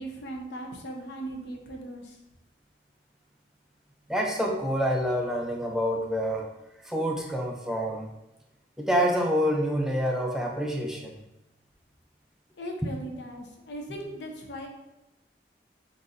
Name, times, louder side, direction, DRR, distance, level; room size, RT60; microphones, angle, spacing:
voice 1, 0.0-2.2 12.6-14.7, right 1 dB, 85° left, 1 dB, 0.7 m, -38 dB
voice 2, 4.1-6.5 6.8-8.1 8.8-11.2 13.9-14.0, equal, 5° right, -1 dB, 0.4 m, -27 dB
4.0 x 3.9 x 2.5 m, 0.93 s
head